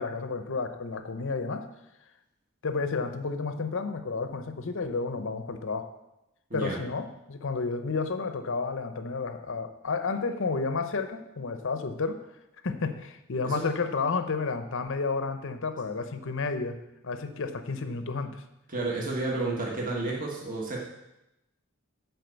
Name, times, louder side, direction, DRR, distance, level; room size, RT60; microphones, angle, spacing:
voice 1, 0.0-1.7 2.6-5.9 6.5-12.2 12.6-16.8 17.0-18.4, left 4 dB, 60° left, 9 dB, 0.7 m, -31 dB
voice 2, 18.7-20.8, right 2 dB, 40° right, -3 dB, 1.5 m, -31 dB
7.8 x 4.6 x 6.8 m, 0.89 s
head